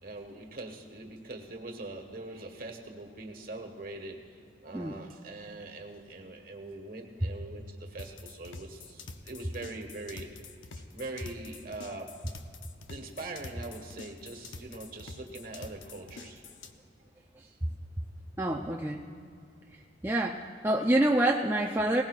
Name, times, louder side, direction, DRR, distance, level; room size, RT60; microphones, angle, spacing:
voice 1, 0.0-10.3 10.8-12.1 12.9-16.6, right 2 dB, 50° right, 4 dB, 1.4 m, -42 dB
sound 1, 8.0-16.7, left 3 dB, 85° left, 0.8 m, -46 dB
voice 2, 18.4-19.1 20.0-22.0, right 1 dB, 10° right, -1 dB, 0.5 m, -27 dB
20.0 x 19.0 x 2.4 m, 2.3 s
head